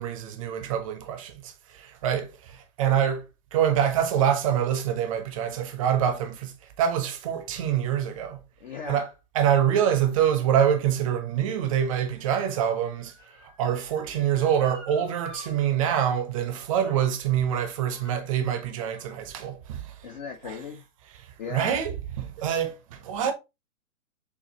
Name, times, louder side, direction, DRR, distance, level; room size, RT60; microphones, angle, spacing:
voice 1, 0.0-3.2 3.5-8.4 8.9-9.1 9.3-20.1 20.4-20.6 21.2-23.3, right 9 dB, 25° right, 0.6 m, -26 dB
voice 2, 8.6-9.0 20.0-20.9 21.4-21.7, left 7 dB, 35° left, 0.5 m, -37 dB
Motor vehicle (road) / Siren, 10.8-15.5 15.9-16.0 16.8-17.1 17.5-19.2 19.9-20.0, left 4 dB, 60° left, 2.1 m, -52 dB
6.8 x 2.5 x 2.8 m
hypercardioid pair, 150°, 42 cm